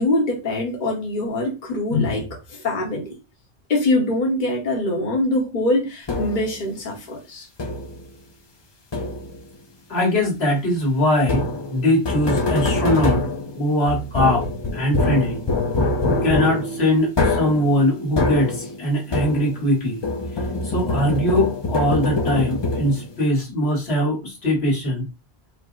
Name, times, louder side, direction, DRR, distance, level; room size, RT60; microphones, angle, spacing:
voice 1, 0.0-3.1 3.7-7.5, left 2 dB, 50° left, 1.1 m, -23 dB
sound 1, 6.1-6.6 7.6-8.1 8.9-9.5 11.2-19.7 20.0-23.2, left 2 dB, 35° left, 0.5 m, -24 dB
voice 2, 9.9-13.3 13.5-15.4 16.1-20.0 20.6-25.1, left 1 dB, 85° left, 1.8 m, -21 dB
Keyboard (musical), 16.1-18.9, right 10 dB, 60° right, 1.8 m, -36 dB
4.8 x 2.0 x 3.8 m
omnidirectional pair, 1.0 m